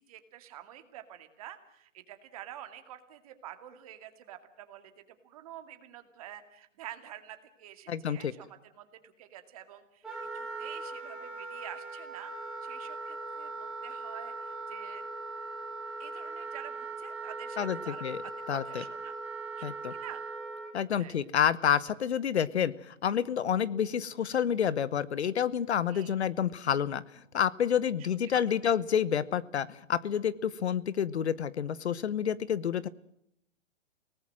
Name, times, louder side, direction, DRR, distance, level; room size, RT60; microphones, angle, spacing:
voice 1, 0.0-4.9 5.2-10.0 10.3-15.0 16.0-19.2 19.6-19.7 20.0-20.2 21.0-21.2 25.9-26.2 28.3-28.7, right 12 dB, 30° right, 8 dB, 2.3 m, -48 dB
voice 2, 7.9-8.3 17.6-18.2 18.5-18.8 19.6-19.9 20.7-32.9, left 8 dB, 60° left, 19 dB, 1.1 m, -29 dB
Wind instrument woodwind instrument, 10.0-20.7, right 3 dB, ahead, 3.9 m, -40 dB
30.0 x 19.0 x 7.6 m, 0.75 s
hypercardioid pair, 170°, 37 cm